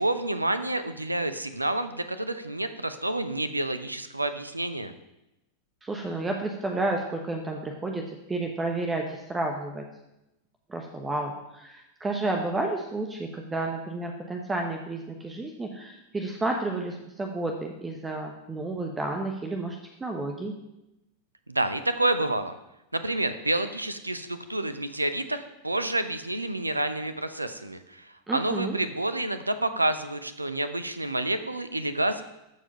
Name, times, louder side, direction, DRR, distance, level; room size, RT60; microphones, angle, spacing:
voice 1, 0.0-4.9 21.5-22.5 22.9-32.2, right 1 dB, 85° right, 11 dB, 0.6 m, -29 dB
voice 2, 5.8-9.8 10.7-20.5 28.3-28.8, right 2 dB, 15° right, 2 dB, 1.1 m, -31 dB
13.5 x 4.9 x 5.5 m, 0.91 s
figure-of-eight pair, 90°, 0 cm